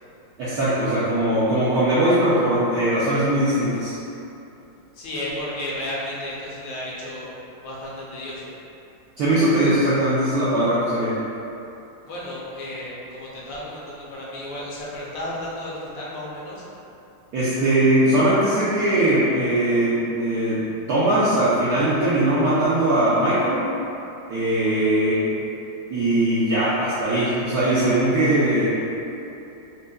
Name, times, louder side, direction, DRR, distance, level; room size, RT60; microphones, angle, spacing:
voice 1, 0.4-4.0 9.2-11.2 17.3-23.7 24.3-25.2 25.9-28.7, right 1 dB, 75° right, -10 dB, 0.9 m, -20 dB
voice 2, 4.9-7.3 7.6-8.5 12.1-16.6, left 1 dB, 70° left, -6 dB, 1.3 m, -33 dB
6.3 x 2.1 x 2.3 m, 2.8 s
omnidirectional pair, 2.2 m